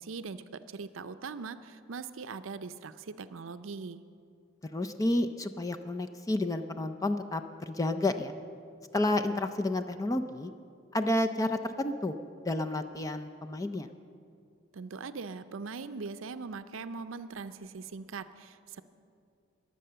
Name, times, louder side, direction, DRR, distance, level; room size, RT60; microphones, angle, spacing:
voice 1, 0.0-4.0 14.7-18.8, right 4 dB, 70° right, 11 dB, 0.5 m, -41 dB
voice 2, 4.6-8.3 8.9-10.5 10.9-12.2 12.4-13.9, left 1 dB, 15° left, 7 dB, 0.4 m, -30 dB
21.0 x 7.6 x 6.8 m, 2.4 s
head